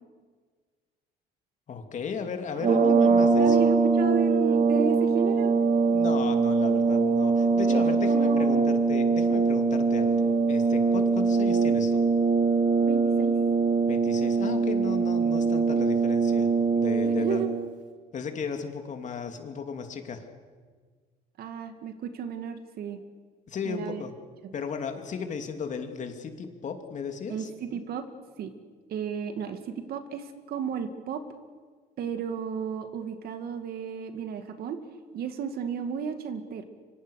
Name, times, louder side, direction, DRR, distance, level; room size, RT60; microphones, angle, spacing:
voice 1, 1.7-3.6 5.9-12.0 13.9-17.4 18.1-20.2 23.5-24.1 24.5-27.5, left 6 dB, 45° left, 5 dB, 2.9 m, -35 dB
sound 1, 2.5-17.7, right 4 dB, 50° right, 3.4 m, -23 dB
voice 2, 3.2-5.5 7.7-8.7 12.8-13.4 17.0-17.5 21.4-23.0 23.6-24.0 24.4-24.5 27.3-28.0 28.4-28.5 28.9-31.2 32.0-34.8 35.1-36.6, right 7 dB, 65° right, 8 dB, 2.4 m, -33 dB
25.0 x 24.5 x 6.6 m, 1.5 s
cardioid pair, 110°, 17 cm